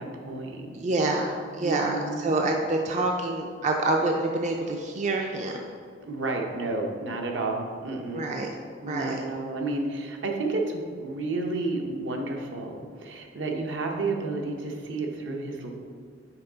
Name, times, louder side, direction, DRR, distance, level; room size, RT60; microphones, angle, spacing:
voice 1, 0.0-0.7 1.6-2.3 6.0-8.3 8.8-15.8, right 3 dB, 70° right, 1 dB, 0.8 m, -31 dB
voice 2, 0.7-5.7 8.1-8.5 8.9-9.2, right 2 dB, 40° right, 1 dB, 0.4 m, -27 dB
5.7 x 4.7 x 3.9 m, 2.2 s
head